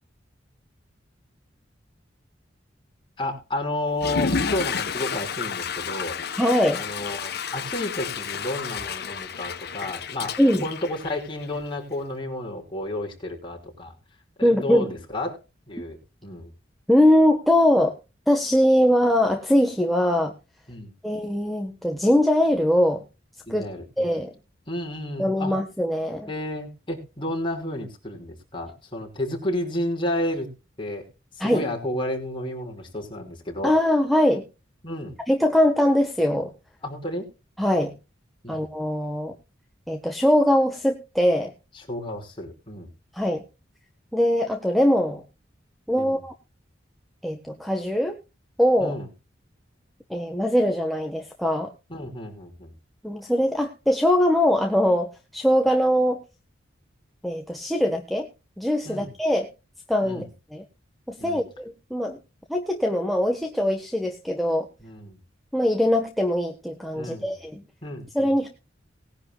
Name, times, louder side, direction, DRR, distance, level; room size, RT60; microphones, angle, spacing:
voice 1, 3.2-6.2 6.8-10.4 10.6-13.9 14.4-15.4 15.7-16.0 16.2-16.5 20.7-20.9 23.5-24.1 24.7-25.6 26.3-30.5 30.8-31.1 31.4-33.7 34.8-35.1 36.8-37.3 38.4-38.6 41.9-42.9 46.0-46.2 48.8-49.1 51.9-52.7 58.8-59.1 60.0-60.3 61.2-61.5 64.8-65.2 66.9-67.3 67.8-68.5, left 1 dB, 25° left, 0 dB, 5.6 m, -31 dB
Water / Toilet flush, 3.9-11.7, left 5 dB, 55° left, 1.3 m, -31 dB
voice 2, 6.4-6.8 10.4-10.6 14.4-14.9 16.9-18.0 18.3-20.3 21.0-23.0 23.5-23.7 24.0-24.3 25.2-26.3 31.4-31.6 33.6-34.4 35.3-36.5 37.6-37.9 38.5-39.3 39.9-41.5 43.1-43.4 44.1-45.2 45.9-46.3 47.2-48.2 48.6-48.9 50.1-51.7 53.0-56.2 57.2-58.3 58.6-59.5 59.9-60.2 60.5-60.6 61.1-62.2 62.5-64.7 65.5-67.6 68.1-68.5, left 1 dB, ahead, 2 dB, 1.5 m, -22 dB
20.0 x 11.0 x 2.4 m, 0.30 s
head